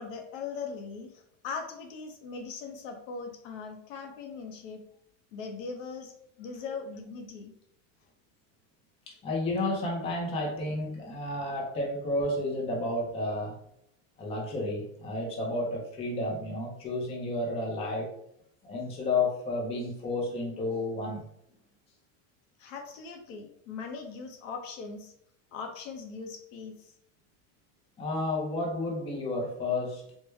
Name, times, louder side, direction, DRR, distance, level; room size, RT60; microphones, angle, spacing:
voice 1, 0.0-4.8 5.3-6.1 6.4-7.5 22.6-25.1 25.5-26.9, left 5 dB, 80° left, 4 dB, 0.8 m, -40 dB
voice 2, 9.1-13.5 14.2-18.1 18.6-21.3 28.0-30.0, left 2 dB, 15° left, -2 dB, 0.5 m, -31 dB
3.2 x 2.2 x 3.1 m, 0.74 s
supercardioid pair, 155°, 39 cm